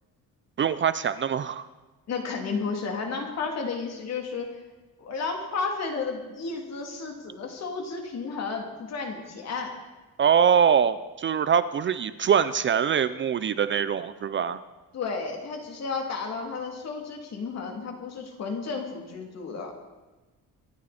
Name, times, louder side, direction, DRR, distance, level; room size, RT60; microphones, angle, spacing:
voice 1, 0.6-1.7 10.2-14.6, right 7 dB, 35° right, 14 dB, 0.4 m, -23 dB
voice 2, 2.1-4.5 5.0-9.8 14.9-19.7, left 4 dB, 50° left, 2 dB, 2.9 m, -32 dB
25.0 x 11.0 x 4.3 m, 1.2 s
cardioid pair, 155°, 34 cm